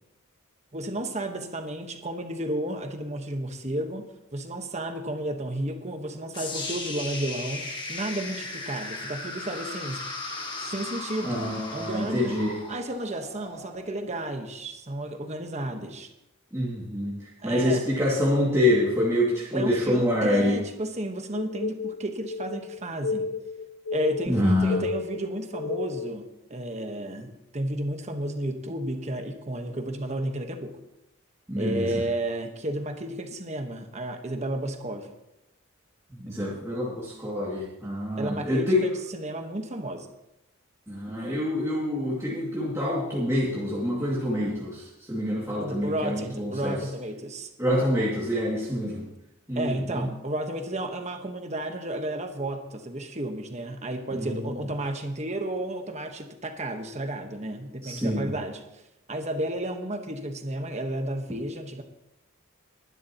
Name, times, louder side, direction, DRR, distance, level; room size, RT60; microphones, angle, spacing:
voice 1, 0.7-10.0 10.6-11.5 11.7-12.4 12.7-16.1 17.4-17.8 19.5-23.2 23.9-30.8 31.6-35.1 38.2-40.1 45.6-47.5 49.5-58.6 59.1-61.8, right 1 dB, 30° right, 5 dB, 1.3 m, -32 dB
sound 1, 6.3-14.4, left 3 dB, 20° left, 1.8 m, -37 dB
voice 2, 11.2-12.5 16.5-17.2 17.4-20.6 24.3-24.8 31.5-31.9 36.2-38.8 40.9-46.8 47.6-49.0 49.5-50.1 54.2-54.5 57.8-58.3, left 1 dB, 15° right, -7 dB, 2.4 m, -26 dB
sound 2, 21.3-26.2, left 4 dB, 80° left, 0.7 m, -32 dB
19.5 x 12.0 x 3.0 m, 0.89 s
head